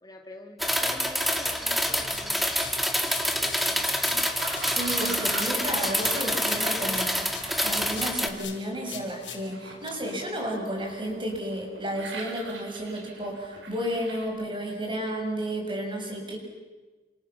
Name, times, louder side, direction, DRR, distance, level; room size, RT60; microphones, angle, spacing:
voice 1, 0.0-2.6 3.0-4.3, left 1 dB, 20° left, 2 dB, 2.4 m, -46 dB
sound 1, 0.6-8.3, equal, ahead, 2.4 m, -27 dB
sound 2, 2.1-3.7 4.0-7.6 7.9-9.9, left 8 dB, 85° left, 4.7 m, -44 dB
sound 3, 4.2-14.3, right 3 dB, 85° right, 6.5 m, -43 dB
voice 2, 4.7-16.4, right 1 dB, 30° right, 2 dB, 6.8 m, -32 dB
29.0 x 28.0 x 7.3 m, 1.3 s
head